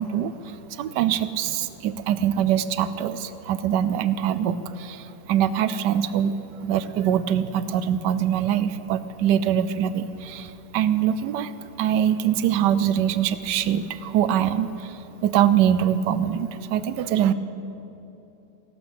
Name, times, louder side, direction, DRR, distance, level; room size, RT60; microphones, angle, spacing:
voice 1, 0.0-11.5 11.8-17.3, right 9 dB, 75° right, 14 dB, 1.2 m, -23 dB
16.0 x 12.0 x 7.0 m, 3.0 s
omnidirectional pair, 2.0 m